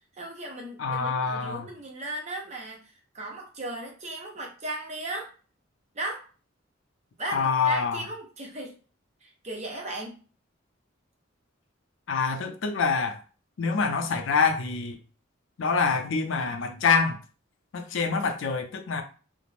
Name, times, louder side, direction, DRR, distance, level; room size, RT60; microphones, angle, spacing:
voice 1, 0.1-5.3 5.9-6.2 7.2-8.7 9.2-10.2, right 1 dB, 35° right, 0 dB, 0.7 m, -36 dB
voice 2, 0.8-1.7 7.3-8.0 12.1-13.2 13.6-15.0 15.6-17.2 17.7-19.0, left 5 dB, 70° left, 5 dB, 0.5 m, -26 dB
2.4 x 2.0 x 3.1 m, 0.37 s
head